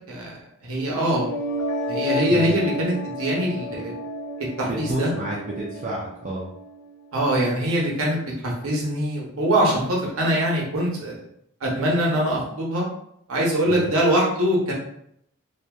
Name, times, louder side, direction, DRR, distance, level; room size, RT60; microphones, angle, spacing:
voice 1, 0.6-1.3 1.9-3.9 4.6-5.1 7.1-11.2 11.6-12.8 13.3-14.7, right 1 dB, 85° right, -3 dB, 0.8 m, -23 dB
sound 1, 1.0-7.0, equal, 60° left, 0.4 m, -31 dB
voice 2, 4.6-6.5 13.7-13.9, right 1 dB, 35° right, -4 dB, 0.4 m, -30 dB
2.7 x 2.2 x 2.2 m, 0.72 s
head